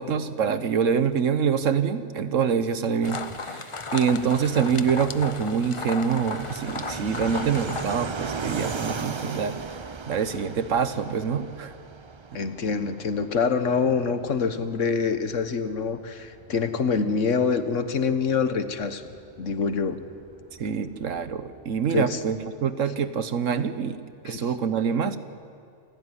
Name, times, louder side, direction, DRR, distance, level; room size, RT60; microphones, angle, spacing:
voice 1, 0.0-9.6 10.1-11.7 20.6-25.2, right 6 dB, 80° right, 11 dB, 1.4 m, -25 dB
sound 1, 3.0-8.0, left 4 dB, 30° left, 0.7 m, -35 dB
Fixed-wing aircraft airplane, 4.1-22.4, right 4 dB, 30° right, 0.5 m, -39 dB
voice 2, 12.3-19.0 19.4-20.0 21.9-22.2 24.2-24.5, left 5 dB, 75° left, 10 dB, 1.6 m, -25 dB
27.5 x 15.0 x 9.9 m, 2.3 s
omnidirectional pair, 1.3 m